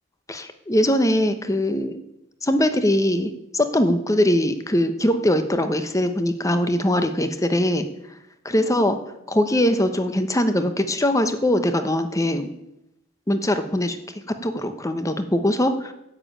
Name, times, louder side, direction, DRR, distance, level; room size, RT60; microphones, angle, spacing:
voice 1, 0.3-2.0 2.4-7.9 8.4-9.0 9.3-12.5 13.3-14.0 14.4-15.9, left 1 dB, 15° left, 9 dB, 0.9 m, -21 dB
10.5 x 7.3 x 8.7 m, 0.85 s
head